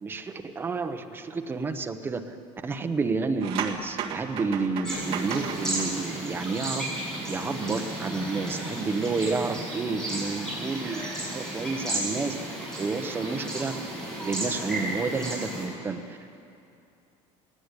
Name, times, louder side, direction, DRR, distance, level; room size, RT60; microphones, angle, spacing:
voice 1, 0.0-2.4 2.6-6.9 7.3-11.0 11.3-12.4 12.8-13.7 14.2-16.3, right 4 dB, 15° right, 6 dB, 1.0 m, -30 dB
sound 1, 3.4-7.2 7.5-7.7, right 8 dB, 45° right, 1.8 m, -35 dB
sound 2, 4.8-15.6, right 1 dB, 5° left, 7.1 m, -33 dB
19.5 x 17.5 x 9.8 m, 2.6 s
cardioid pair, 170°, 13 cm